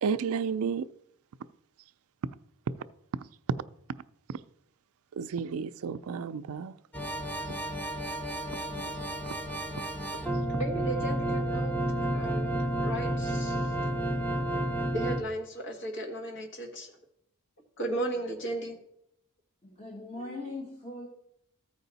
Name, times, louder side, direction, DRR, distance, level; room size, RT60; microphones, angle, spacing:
voice 1, 0.0-0.9 5.2-6.7, right 6 dB, 70° right, 0.4 m, -31 dB
sound 1, 6.9-15.2, right 1 dB, 5° left, 0.8 m, -31 dB
voice 2, 10.6-11.7 12.1-14.0 14.5-14.6 14.9-16.9 17.8-18.8, right 1 dB, 55° left, 1.4 m, -35 dB
voice 3, 19.6-21.1, left 2 dB, 30° left, 1.2 m, -40 dB
14.0 x 4.8 x 4.0 m
head